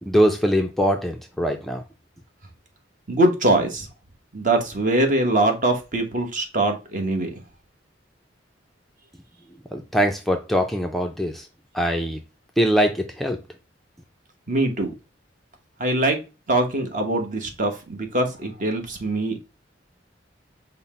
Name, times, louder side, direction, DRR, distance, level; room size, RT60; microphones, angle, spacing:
voice 1, 0.0-1.8 9.7-11.5 11.7-12.2 12.6-13.4, equal, ahead, 0.3 m, -22 dB
voice 2, 3.1-3.9 4.3-7.3 14.5-14.9 15.8-16.2 16.5-19.4, right 2 dB, 45° right, 1.0 m, -22 dB
5.5 x 2.0 x 4.1 m
head